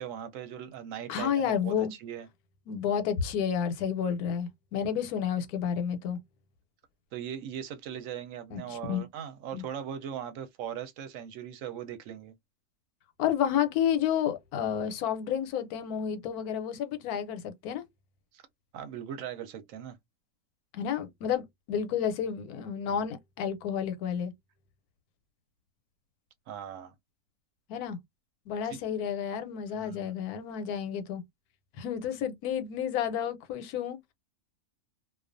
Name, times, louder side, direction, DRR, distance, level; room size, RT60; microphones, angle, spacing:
voice 1, 0.0-2.3 7.1-12.3 18.3-18.4 18.7-20.0 22.9-23.0 26.5-26.9 28.6-28.8 29.8-30.1, right 9 dB, 70° right, 0.9 m, -39 dB
voice 2, 1.1-1.9 2.7-6.2 8.5-9.0 9.5-9.6 13.2-17.8 20.7-21.4 21.7-24.3 27.7-28.0 28.5-31.2 31.8-34.0, left 8 dB, 85° left, 1.1 m, -30 dB
2.3 x 2.3 x 2.4 m
omnidirectional pair, 1.6 m